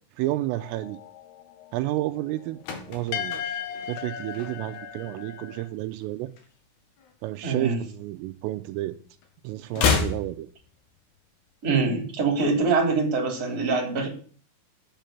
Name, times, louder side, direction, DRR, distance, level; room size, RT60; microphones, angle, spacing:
voice 1, 0.2-1.0 1.7-2.6 2.9-3.6 3.9-6.3 7.2-9.0 9.4-10.5, right 16 dB, 85° right, 8 dB, 3.3 m, -31 dB
sound 1, 0.6-5.7, left 9 dB, 85° left, 2.4 m, -37 dB
sound 2, 2.3-4.9 5.2-5.5 5.8-7.3 7.5-8.9 9.1-11.3 11.5-11.6, left 5 dB, 60° left, 3.7 m, -31 dB
voice 2, 7.4-7.8 11.6-14.1, right 4 dB, 20° right, 1 dB, 3.2 m, -24 dB
9.0 x 7.6 x 9.2 m, 0.43 s
omnidirectional pair, 5.9 m